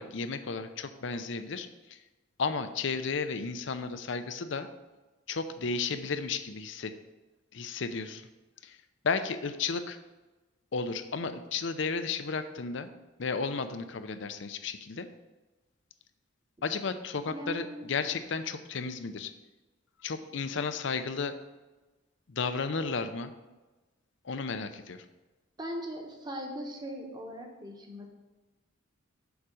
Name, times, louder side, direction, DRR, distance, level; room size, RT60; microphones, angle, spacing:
voice 1, 0.0-2.0 2.4-4.7 5.3-6.9 7.5-8.3 8.6-8.8 9.0-10.0 10.7-12.9 13.2-15.1 16.6-19.3 20.0-21.4 22.3-23.3 24.2-25.1, left 4 dB, 65° left, 10 dB, 0.6 m, -33 dB
voice 2, 17.2-17.9 25.6-28.1, equal, 20° right, 2 dB, 1.2 m, -39 dB
7.1 x 5.0 x 6.3 m, 1.2 s
head